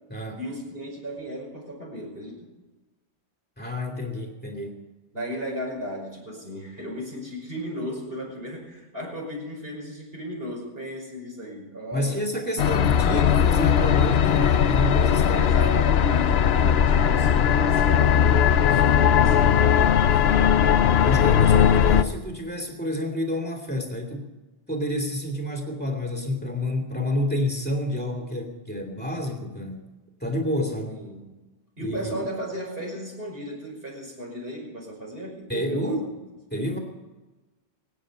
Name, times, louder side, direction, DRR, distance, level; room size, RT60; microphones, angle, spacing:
voice 1, 0.4-2.5 5.1-12.2 15.3-21.0 30.9-31.3 31.8-36.2, equal, 50° right, -2 dB, 5.8 m, -36 dB
voice 2, 3.6-4.8 11.9-15.5 16.0-16.3 21.0-24.3 24.7-29.8 30.2-31.0 31.8-32.3 35.5-36.1 36.5-36.8, left 1 dB, 10° left, 4 dB, 2.9 m, -29 dB
sound 1, 12.6-22.0, left 8 dB, 60° left, 0.9 m, -19 dB
24.0 x 9.8 x 5.4 m, 1.2 s
omnidirectional pair, 1.3 m